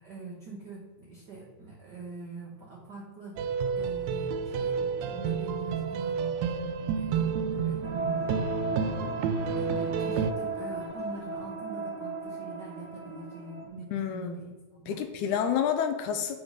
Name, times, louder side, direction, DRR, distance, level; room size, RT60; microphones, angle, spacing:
voice 1, 0.0-3.4 3.7-6.3 6.9-8.3 9.4-15.0, right 3 dB, 70° right, -3 dB, 1.0 m, -44 dB
sound 1, 3.4-10.3, right 6 dB, 90° right, 1.5 m, -30 dB
sound 2, 7.8-13.7, right 2 dB, 50° right, 0.6 m, -36 dB
voice 2, 13.9-14.4 14.9-16.4, left 8 dB, 80° left, 8 dB, 1.9 m, -29 dB
7.3 x 4.4 x 5.0 m, 1.4 s
omnidirectional pair, 3.6 m